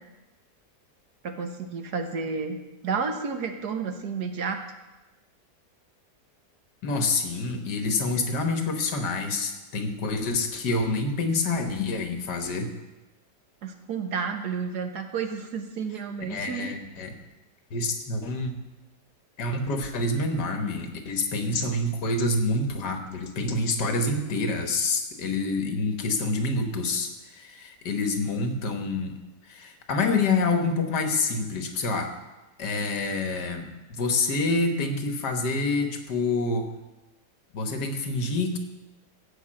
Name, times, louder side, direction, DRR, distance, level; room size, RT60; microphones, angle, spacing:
voice 1, 1.2-2.6 2.8-4.6 13.6-16.7, right 5 dB, 65° right, 6 dB, 1.6 m, -31 dB
voice 2, 6.8-12.7 16.3-17.1 17.7-18.5 19.4-32.1 32.6-36.7 37.5-38.6, left 3 dB, 75° left, 5 dB, 1.9 m, -27 dB
15.5 x 5.3 x 7.6 m, 1.0 s
omnidirectional pair, 1.9 m